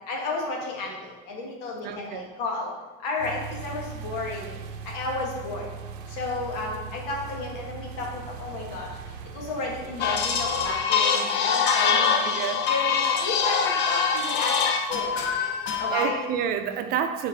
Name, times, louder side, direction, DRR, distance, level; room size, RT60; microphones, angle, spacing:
voice 1, 0.1-1.0 1.3-2.7 3.0-4.5 4.8-5.7 6.2-8.9 9.3-12.4 12.7-14.5 14.9-15.2 15.8-16.2, left 3 dB, 90° left, -1 dB, 1.6 m, -32 dB
voice 2, 1.8-2.3 12.1-12.7 15.9-17.3, right 8 dB, 50° right, 8 dB, 0.5 m, -29 dB
sound 1, 3.2-10.8, right 6 dB, 85° right, 0.7 m, -39 dB
sound 2, 10.0-16.3, left 6 dB, 60° left, 0.7 m, -24 dB
4.7 x 4.5 x 4.6 m, 1.2 s
cardioid pair, 145°, 20 cm